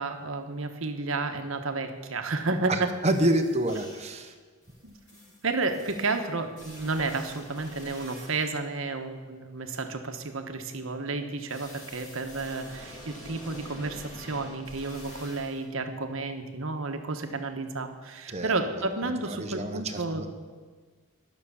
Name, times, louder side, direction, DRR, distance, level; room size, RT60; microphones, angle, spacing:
voice 1, 0.0-2.9 4.8-20.2, right 3 dB, 65° right, 6 dB, 1.1 m, -31 dB
sound 1, 2.7-2.8 3.1-4.3 4.6-8.7 11.5-15.7, equal, 35° left, 3.2 m, -47 dB
voice 2, 2.7-4.3 18.3-18.6 19.3-20.3, right 1 dB, 30° right, 6 dB, 0.9 m, -28 dB
12.0 x 6.5 x 7.1 m, 1.5 s
head